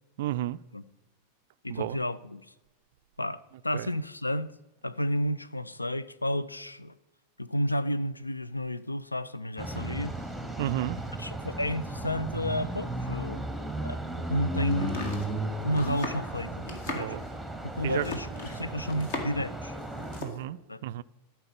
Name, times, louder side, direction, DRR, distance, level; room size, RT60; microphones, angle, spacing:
voice 1, 0.2-0.6 1.7-2.0 3.7-3.9 10.6-11.1 16.9-17.2 17.8-18.1 20.2-21.0, right 14 dB, 55° right, 0.3 m, -32 dB
voice 2, 1.6-2.5 3.2-4.5 4.8-6.9 7.4-10.2 11.2-13.4 13.8-15.1 15.6-17.2 17.6-19.8 20.7-20.8, equal, 85° left, 0.4 m, -31 dB
sound 1, 9.6-20.2, right 1 dB, ahead, 1.1 m, -35 dB
Domestic sounds home sounds, 14.7-19.5 19.8-20.4, left 2 dB, 55° left, 2.0 m, -38 dB
13.5 x 4.5 x 6.7 m
figure-of-eight pair, 90°, 0 cm